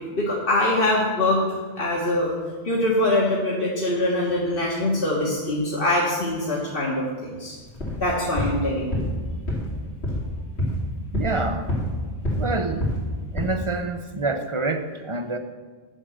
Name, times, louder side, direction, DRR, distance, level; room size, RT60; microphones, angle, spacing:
voice 1, 0.1-1.4 1.8-2.3 2.6-7.6 8.0-9.0, left 1 dB, 60° left, -5 dB, 1.8 m, -23 dB
sound 1, 7.7-8.0 8.4-8.6 8.9-9.2 9.5-9.7 10.0-10.3 10.6-10.8 11.1-12.0 12.2-12.5 12.8-13.1 13.4-13.5, equal, 80° left, 3.6 m, -26 dB
voice 2, 11.1-11.7 12.4-12.9 13.3-15.4, right 3 dB, 35° right, 7 dB, 0.7 m, -27 dB
9.9 x 6.2 x 7.7 m, 1.5 s
omnidirectional pair, 1.1 m